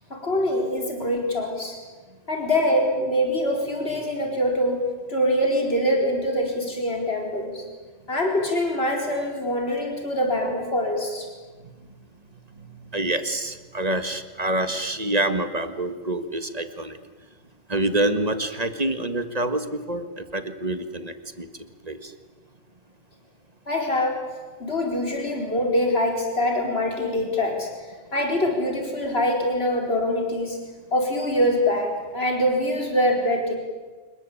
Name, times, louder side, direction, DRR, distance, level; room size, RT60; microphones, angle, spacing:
voice 1, 0.1-1.8 2.3-4.8 5.1-7.6 8.1-11.3 23.7-24.2 24.6-27.7 28.1-30.6 30.9-33.6, left 1 dB, 55° left, 1 dB, 4.8 m, -24 dB
voice 2, 12.9-17.0 17.7-21.5 21.9-22.1, right 1 dB, 30° right, 9 dB, 1.8 m, -26 dB
26.5 x 22.0 x 8.7 m, 1.4 s
omnidirectional pair, 1.3 m